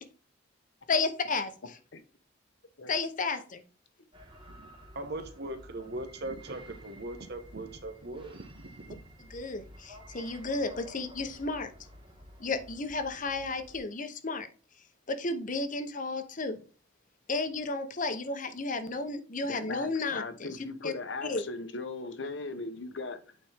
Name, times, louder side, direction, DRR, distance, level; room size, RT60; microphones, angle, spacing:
voice 1, 0.9-1.5 2.9-3.6 9.3-11.7 12.4-14.5 15.1-16.6 17.3-20.5 20.8-20.9 21.2-21.4, left 3 dB, 45° left, 0.9 m, -32 dB
sound 1, 4.1-13.8, equal, 25° right, 1.6 m, -52 dB
voice 2, 4.9-9.0, right 2 dB, 60° right, 1.1 m, -40 dB
voice 3, 19.5-23.2, left 3 dB, 70° left, 0.9 m, -38 dB
8.7 x 4.3 x 3.5 m
head